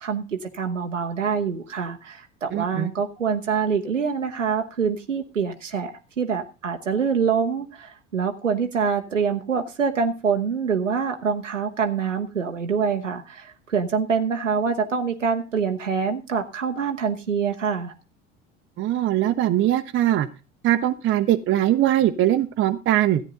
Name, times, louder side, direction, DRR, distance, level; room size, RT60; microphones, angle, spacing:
voice 1, 0.0-17.9, right 6 dB, 90° right, 5 dB, 0.7 m, -25 dB
voice 2, 2.5-2.9 18.8-20.3 20.6-23.2, right 13 dB, 35° right, 6 dB, 0.7 m, -21 dB
13.5 x 9.0 x 3.9 m, 0.33 s
figure-of-eight pair, 70°, 36 cm